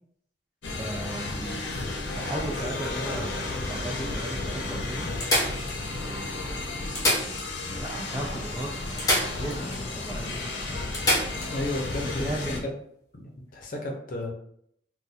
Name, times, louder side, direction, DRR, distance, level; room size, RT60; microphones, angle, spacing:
sound 1, 0.6-12.6, left 2 dB, 90° left, 0.6 m, -33 dB
voice 1, 0.8-1.6 2.2-5.1 6.0-6.9 7.8-9.0 9.3-10.4 12.0-12.7, right 1 dB, 15° right, -4 dB, 0.4 m, -36 dB
sound 2, 1.7-3.3 4.0-4.1 4.3-4.4 5.2-6.2 6.8-8.1 9.0-9.8 10.2-10.3 10.9-11.5 13.5-13.6, left 1 dB, 20° left, 0.9 m, -28 dB
voice 2, 11.5-12.2 12.6-12.7 13.5-14.3, left 1 dB, 45° left, 0 dB, 0.7 m, -32 dB
2.5 x 2.3 x 4.1 m, 0.68 s
head